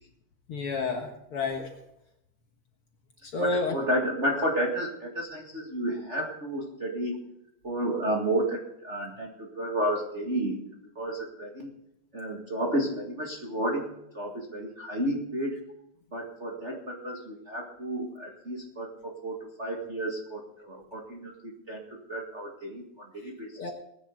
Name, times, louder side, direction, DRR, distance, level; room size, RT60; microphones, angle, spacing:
voice 1, 0.5-1.8 3.2-3.7 23.6-23.7, left 3 dB, 55° left, 3 dB, 2.0 m, -30 dB
voice 2, 3.4-7.2 7.6-10.6 11.0-11.7 12.1-13.9 14.1-15.6 16.1-23.7, right 1 dB, 25° right, -2 dB, 1.8 m, -32 dB
20.5 x 10.0 x 3.9 m, 0.81 s
omnidirectional pair, 3.5 m